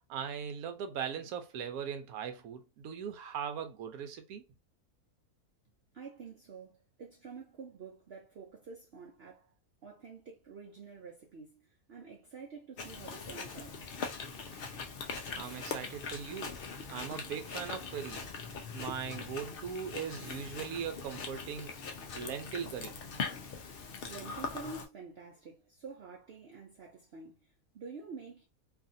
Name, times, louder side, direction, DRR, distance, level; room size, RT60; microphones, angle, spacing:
voice 1, 0.1-4.4 15.3-16.6 16.9-18.3 18.7-21.7 22.1-22.9, right 7 dB, 80° right, 1.1 m, -39 dB
voice 2, 5.9-9.5 9.8-13.8 24.1-28.5, right 5 dB, 60° right, 0.7 m, -48 dB
Chewing mastication, 12.8-24.8, left 5 dB, 65° left, 0.5 m, -41 dB
2.7 x 2.5 x 2.5 m
omnidirectional pair, 1.6 m